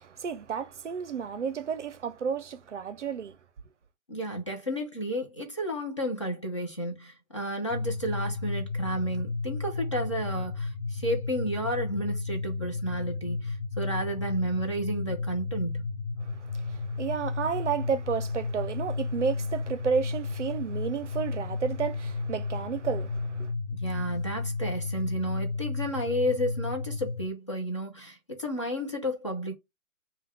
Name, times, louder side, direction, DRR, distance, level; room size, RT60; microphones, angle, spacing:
voice 1, 0.0-3.4 16.2-23.5, right 6 dB, 60° right, 0.6 m, -32 dB
voice 2, 4.1-15.8 23.8-29.5, equal, 20° left, 0.5 m, -32 dB
sound 1, 7.7-27.3, left 3 dB, 65° left, 1.1 m, -33 dB
3.8 x 2.3 x 4.3 m
hypercardioid pair, 165°, 41 cm